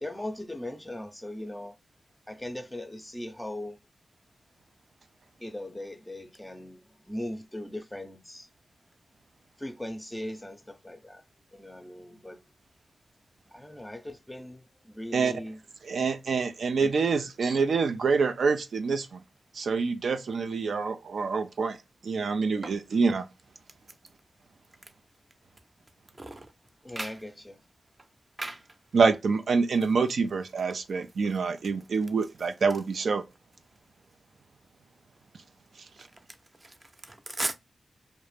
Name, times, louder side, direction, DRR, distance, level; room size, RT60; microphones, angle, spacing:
voice 1, 0.0-1.8 2.3-3.8 5.4-8.5 9.6-11.2 11.5-12.4 13.5-15.6 16.8-16.9 26.8-27.6, left 1 dB, 10° left, 0.5 m, -39 dB
voice 2, 15.8-19.2 19.5-23.3 28.9-33.3 35.8-35.9, right 5 dB, 75° right, 0.3 m, -26 dB
voice 3, 37.0-37.5, right 2 dB, 35° right, 0.7 m, -34 dB
2.4 x 2.1 x 3.2 m
cardioid pair, 50°, 0 cm